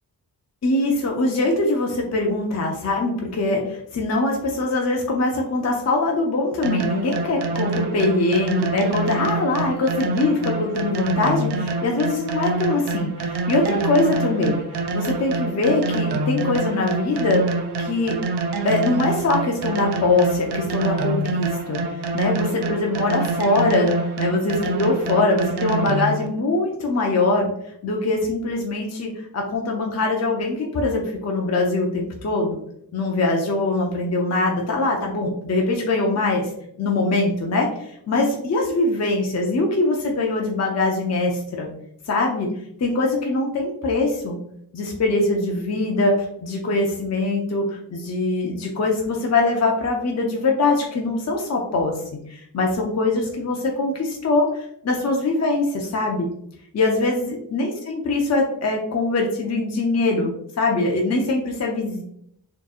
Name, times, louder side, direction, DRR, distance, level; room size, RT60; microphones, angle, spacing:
voice 1, 0.6-17.4 17.8-18.2 18.6-27.5 27.8-32.6 32.9-36.5 36.8-41.7 42.1-42.5 42.8-44.4 44.7-46.1 46.4-51.9 52.3-56.3 56.7-62.0, left 2 dB, 40° left, 0 dB, 0.6 m, -22 dB
sound 1, 6.6-26.3, right 3 dB, 75° right, 0.6 m, -26 dB
4.3 x 3.0 x 2.4 m, 0.71 s
wide cardioid pair, 150°, 41 cm